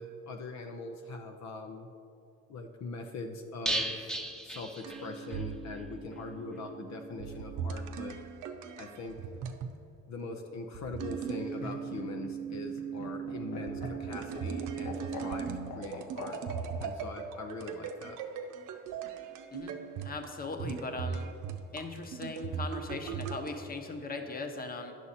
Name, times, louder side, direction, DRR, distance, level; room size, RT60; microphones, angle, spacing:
voice 1, 0.0-1.9 2.5-4.0 4.4-8.2 8.8-9.2 10.1-16.4 16.8-18.2, left 3 dB, 65° left, 4 dB, 0.7 m, -42 dB
sound 1, 3.7-5.4 5.7-5.8 6.1-6.2, right 1 dB, ahead, 0.9 m, -35 dB
sound 2, 4.8-9.8 10.7-23.7, right 7 dB, 85° right, 0.6 m, -39 dB
Laughter, 11.2-16.9 18.2-18.8, left 3 dB, 85° left, 1.3 m, -44 dB
voice 2, 20.0-21.3 21.7-24.9, left 3 dB, 30° left, 5 dB, 1.0 m, -39 dB
9.7 x 6.5 x 4.2 m, 2.4 s
cardioid pair, 90°, 30 cm